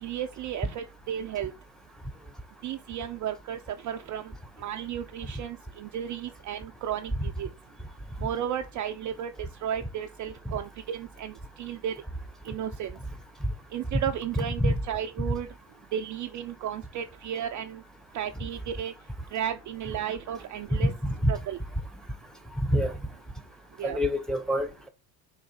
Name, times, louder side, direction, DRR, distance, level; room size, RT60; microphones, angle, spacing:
voice 1, 0.0-1.5 2.6-4.3 4.6-7.5 8.2-9.3 9.6-11.9 12.4-13.0 13.7-15.5 15.9-17.8 18.1-18.9 19.3-20.9 21.3-21.6 23.8-24.0, right 9 dB, 40° right, 0.4 m, -34 dB
voice 2, 14.4-14.8 21.0-21.3 22.7-22.9 23.8-24.9, equal, ahead, 0.7 m, -26 dB
3.9 x 2.6 x 4.0 m
hypercardioid pair, 70°, 50 cm